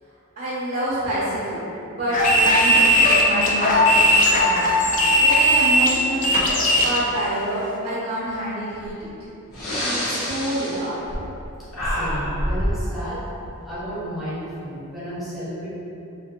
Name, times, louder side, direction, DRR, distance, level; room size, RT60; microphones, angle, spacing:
voice 1, 0.4-4.7 5.2-9.1 9.8-11.2, equal, 40° right, -11 dB, 0.5 m, -27 dB
sound 1, 2.1-7.0, equal, 35° left, 0.3 m, -17 dB
Breathing, 8.9-9.0 9.5-11.5 11.7-12.8, equal, 70° left, 0.8 m, -26 dB
voice 2, 11.8-13.2 13.6-15.7, equal, ahead, -11 dB, 0.6 m, -32 dB
3.2 x 2.0 x 2.8 m, 2.8 s
head